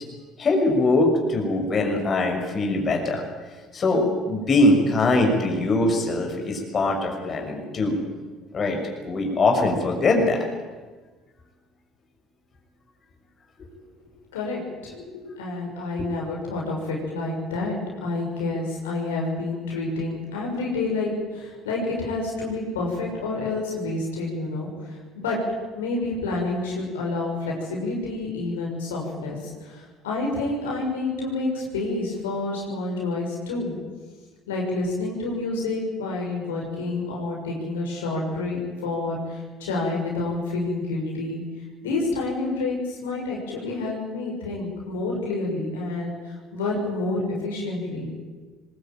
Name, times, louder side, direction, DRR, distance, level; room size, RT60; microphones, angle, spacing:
voice 1, 0.4-3.2 3.7-8.0 8.5-10.4, left 2 dB, 40° left, 2 dB, 6.2 m, -22 dB
voice 2, 14.3-25.4 25.7-33.8 34.5-41.4 41.8-48.1, left 2 dB, 85° left, -2 dB, 6.4 m, -29 dB
23.0 x 20.5 x 9.2 m, 1.4 s
hypercardioid pair, 65°, 0 cm